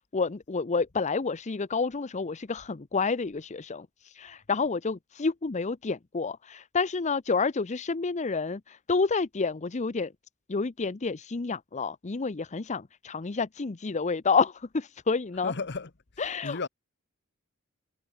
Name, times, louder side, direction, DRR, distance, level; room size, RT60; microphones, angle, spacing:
voice 1, 0.1-3.9 4.1-10.1 10.5-15.5 16.2-16.7, left 4 dB, 30° left, 0.6 m, -29 dB
voice 2, 15.4-15.9 16.4-16.7, left 4 dB, 50° left, 1.2 m, -33 dB
head